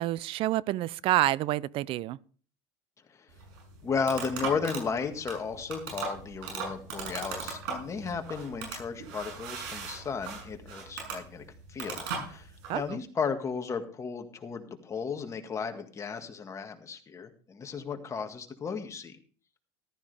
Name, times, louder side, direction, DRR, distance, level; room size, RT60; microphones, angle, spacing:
voice 1, 0.0-2.2 12.7-13.0, right 15 dB, 50° right, 0.5 m, -28 dB
sound 1, 3.3-12.8, right 5 dB, 90° right, 6.8 m, -39 dB
voice 2, 3.8-19.2, left 5 dB, 25° left, 1.9 m, -34 dB
14.5 x 12.5 x 3.5 m
supercardioid pair, 110°, 11 cm